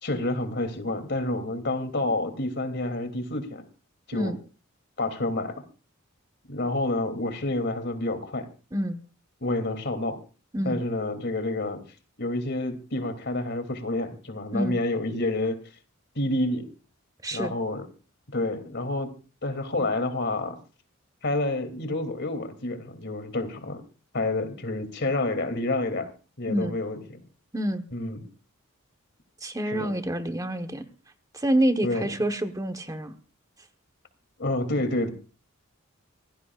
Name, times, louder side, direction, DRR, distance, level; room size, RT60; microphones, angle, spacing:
voice 1, 0.0-3.6 4.1-4.3 5.0-5.5 6.4-8.5 9.4-10.2 10.6-11.8 12.2-15.6 16.1-16.7 17.3-17.9 18.3-19.1 19.4-20.6 21.2-23.8 24.1-26.1 26.4-27.2 27.9-28.3 29.6-29.9 31.8-32.1 34.4-35.1, left 2 dB, 60° left, 9 dB, 2.9 m, -28 dB
voice 2, 27.5-27.9 29.4-30.9 31.3-33.1, right 1 dB, 15° right, 7 dB, 1.2 m, -27 dB
25.0 x 17.5 x 2.4 m, 0.35 s
head